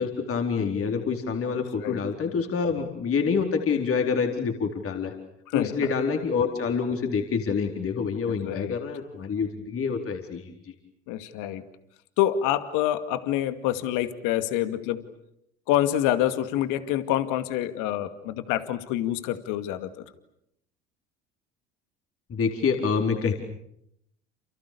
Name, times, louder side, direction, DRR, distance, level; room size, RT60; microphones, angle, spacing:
voice 1, 0.0-5.1 5.5-10.7 22.3-23.3, left 5 dB, 40° left, 3 dB, 4.4 m, -27 dB
voice 2, 1.5-2.0 5.5-5.8 8.3-8.8 11.1-11.6 12.2-15.1 15.7-20.0, left 12 dB, 65° left, 10 dB, 2.4 m, -27 dB
29.0 x 29.0 x 6.9 m, 0.76 s
hypercardioid pair, 65°, 33 cm